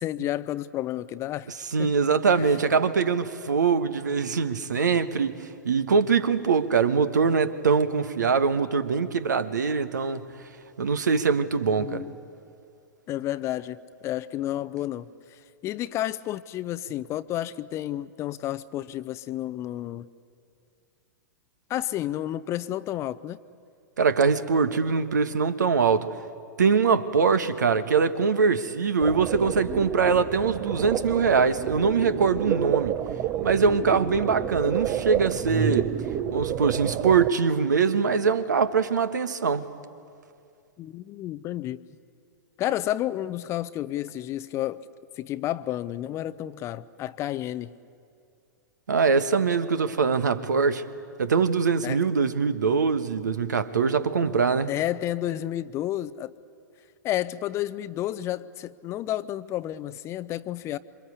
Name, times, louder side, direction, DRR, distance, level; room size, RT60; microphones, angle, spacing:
voice 1, 0.0-1.5 1.8-1.9 2.5-2.6 11.7-12.1 13.1-20.1 21.7-23.4 40.8-41.8 42.6-44.8 45.2-47.7 51.8-52.0 54.7-56.3 57.0-60.8, left 13 dB, 25° left, 0.6 m, -31 dB
voice 2, 1.7-10.3 10.8-12.0 24.0-26.1 26.6-33.0 33.4-35.9 36.3-39.7 48.9-50.8 51.2-54.7, right 5 dB, 70° right, 1.4 m, -23 dB
sound 1, 29.0-37.3, right 10 dB, 30° right, 0.8 m, -29 dB
27.5 x 24.0 x 8.4 m
figure-of-eight pair, 105°, 10 cm